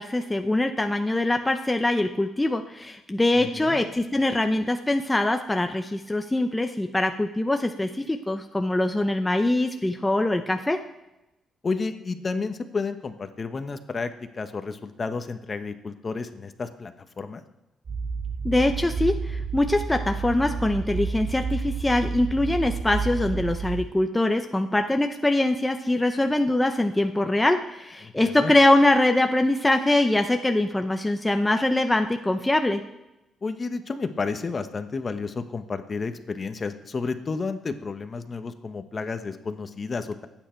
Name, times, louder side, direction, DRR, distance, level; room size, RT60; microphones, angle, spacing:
voice 1, 0.0-10.8 18.4-32.8, left 1 dB, 10° left, 5 dB, 0.8 m, -23 dB
voice 2, 3.4-3.8 11.6-17.4 28.0-28.5 33.4-40.3, left 4 dB, 35° left, 8 dB, 1.1 m, -31 dB
sound 1, 17.9-23.9, right 5 dB, 50° right, 0.9 m, -30 dB
22.5 x 9.2 x 4.6 m, 0.98 s
cardioid pair, 100°, 0 cm